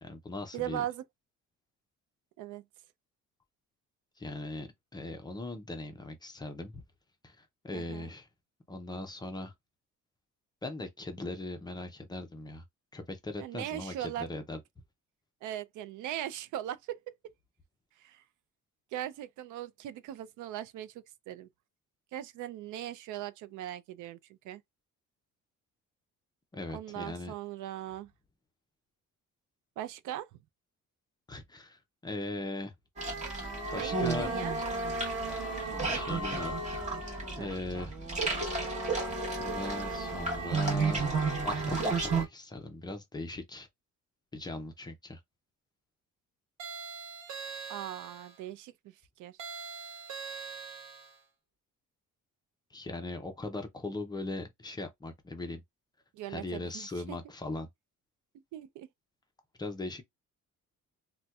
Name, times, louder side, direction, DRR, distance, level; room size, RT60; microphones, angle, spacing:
voice 1, 0.0-0.8 4.2-6.8 7.2-8.3 8.7-9.5 10.6-12.6 12.9-14.6 26.5-27.3 31.3-32.7 33.7-34.3 35.7-36.5 37.3-37.9 39.4-41.1 41.4-43.7 44.3-45.2 52.7-55.6 56.3-57.7 59.6-60.0, left 2 dB, 15° left, 0.4 m, -39 dB
voice 2, 0.5-1.0 2.4-2.6 7.7-8.1 13.4-14.3 15.4-17.1 18.0-18.2 18.9-21.5 22.1-24.2 24.4-24.6 26.7-28.1 29.8-30.4 33.7-34.6 37.4-37.5 47.7-49.4 56.1-57.2 58.5-58.9, right 12 dB, 80° right, 0.5 m, -39 dB
sound 1, 33.0-42.2, right 3 dB, 25° right, 1.0 m, -32 dB
sound 2, 46.6-48.4 49.4-51.2, right 5 dB, 65° right, 1.1 m, -42 dB
4.1 x 2.2 x 2.3 m
cardioid pair, 170°, 30 cm